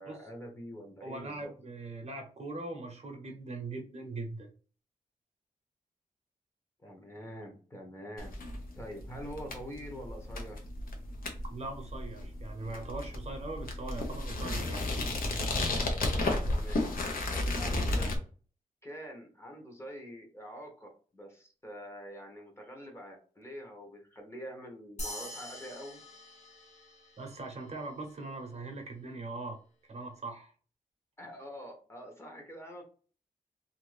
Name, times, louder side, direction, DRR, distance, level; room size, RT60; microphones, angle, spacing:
voice 1, 0.0-1.5 6.8-8.3 8.8-10.6 16.5-16.8 17.3-18.1 18.8-26.0 31.2-32.8, equal, 20° left, 1 dB, 0.8 m, -45 dB
voice 2, 1.0-4.5 11.4-14.9 27.2-29.6 29.9-30.5, right 2 dB, 50° right, 3 dB, 0.7 m, -41 dB
sound 1, 8.2-18.2, left 2 dB, 80° left, 0.8 m, -33 dB
sound 2, 25.0-27.7, left 1 dB, 50° left, 1.0 m, -44 dB
2.8 x 2.5 x 3.2 m, 0.40 s
wide cardioid pair, 135°, 15 cm